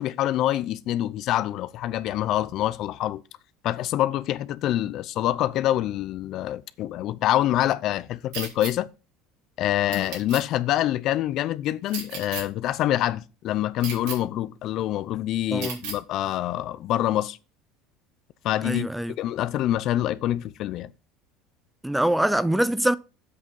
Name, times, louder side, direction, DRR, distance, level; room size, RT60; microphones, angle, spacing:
voice 1, 0.0-3.2 3.6-8.9 9.6-17.4 18.4-18.9 19.2-20.9, left 13 dB, 55° left, 0.5 m, -26 dB
sound 1, 8.3-8.7 9.9-10.4 11.9-12.4 13.8-14.2 15.6-16.0, right 6 dB, 75° right, 3.6 m, -34 dB
voice 2, 15.5-15.8 18.6-19.1 21.8-23.0, right 1 dB, 5° right, 0.5 m, -24 dB
7.8 x 6.1 x 5.4 m
hypercardioid pair, 85°, 0 cm